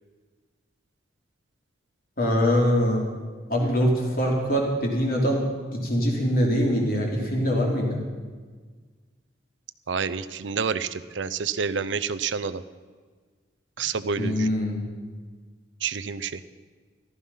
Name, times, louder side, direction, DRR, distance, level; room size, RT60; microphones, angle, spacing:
voice 1, 2.2-3.0 3.5-5.4 5.7-8.0 14.2-14.8, equal, 45° left, -1 dB, 3.3 m, -23 dB
voice 2, 9.9-12.6 13.8-14.5 15.8-16.4, right 6 dB, 70° right, 13 dB, 0.6 m, -28 dB
14.5 x 13.5 x 5.6 m, 1.5 s
head